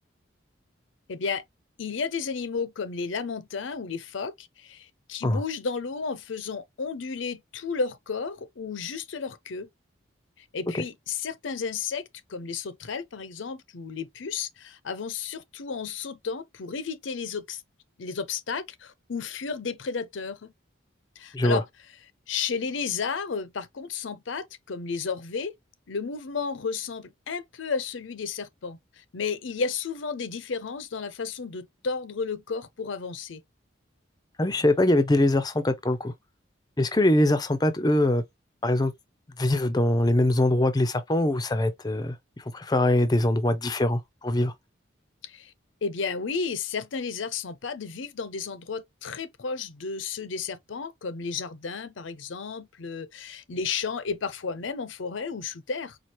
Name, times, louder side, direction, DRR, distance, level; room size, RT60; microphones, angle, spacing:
voice 1, 1.1-1.4 1.8-9.7 10.4-12.0 12.3-17.6 18.0-20.5 21.2-21.6 22.3-25.5 25.9-33.4 45.2-45.5 45.8-56.0, left 5 dB, 85° left, 0.6 m, -33 dB
voice 2, 34.4-36.1 36.8-38.2 38.6-38.9 39.4-44.5, left 1 dB, 20° left, 0.5 m, -23 dB
4.5 x 2.4 x 2.9 m
head